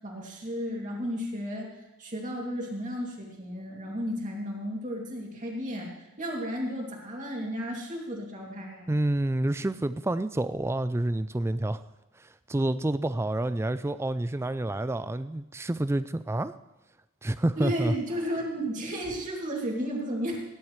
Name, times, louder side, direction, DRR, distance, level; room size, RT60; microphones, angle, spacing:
voice 1, 0.0-1.7 2.0-8.9 17.6-20.4, equal, 35° right, -2 dB, 2.6 m, -33 dB
voice 2, 8.9-11.8 12.2-16.5 17.2-17.9, right 1 dB, 10° right, 14 dB, 0.3 m, -28 dB
17.0 x 10.5 x 3.2 m, 1.0 s
head